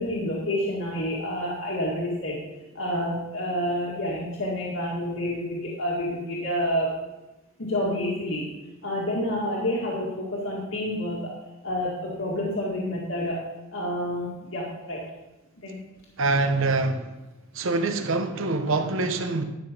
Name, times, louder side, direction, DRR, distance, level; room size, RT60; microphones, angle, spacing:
voice 1, 0.0-2.4 2.7-7.0 7.6-8.5 8.8-11.3 11.6-13.4 13.7-15.0 15.6-15.8, left 1 dB, 70° left, -5 dB, 1.9 m, -28 dB
voice 2, 16.2-17.1 17.5-19.4, right 3 dB, 70° right, 8 dB, 0.9 m, -25 dB
11.5 x 5.9 x 5.1 m, 1.0 s
head